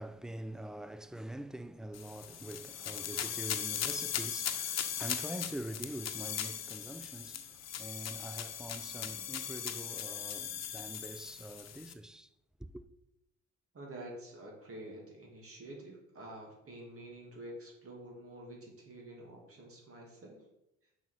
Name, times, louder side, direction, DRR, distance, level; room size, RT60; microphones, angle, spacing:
voice 1, 0.0-12.3 12.6-12.8, right 1 dB, ahead, 0.4 m, -44 dB
sound 1, 1.9-11.9, left 9 dB, 60° left, 0.9 m, -39 dB
voice 2, 13.7-20.4, right 1 dB, 50° right, 2.7 m, -48 dB
6.0 x 5.6 x 6.4 m
cardioid pair, 90°, 30 cm